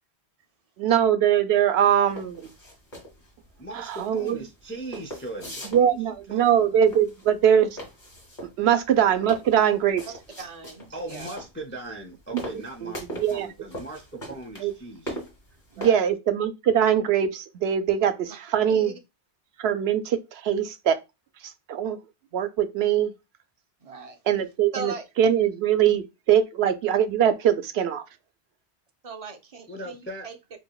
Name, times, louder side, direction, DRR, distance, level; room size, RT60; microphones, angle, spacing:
voice 1, 0.8-2.5 3.7-4.4 5.7-7.8 8.6-10.0 12.3-12.4 12.8-12.9 13.2-13.5 14.6-14.7 15.8-18.9 19.6-21.0 21.7-22.0 22.3-23.1 24.3-28.0, right 9 dB, 80° right, 0.8 m, -22 dB
sound 1, 2.1-15.9, right 1 dB, 45° left, 1.6 m, -40 dB
voice 2, 3.6-6.8 10.9-15.2 29.7-30.3, right 1 dB, 15° left, 0.4 m, -39 dB
voice 3, 10.4-11.3 15.7-16.0 18.3-18.4 18.7-18.9 23.8-24.2 24.7-25.1 29.0-30.4, right 3 dB, 40° right, 0.6 m, -39 dB
4.7 x 2.7 x 2.3 m
omnidirectional pair, 1.1 m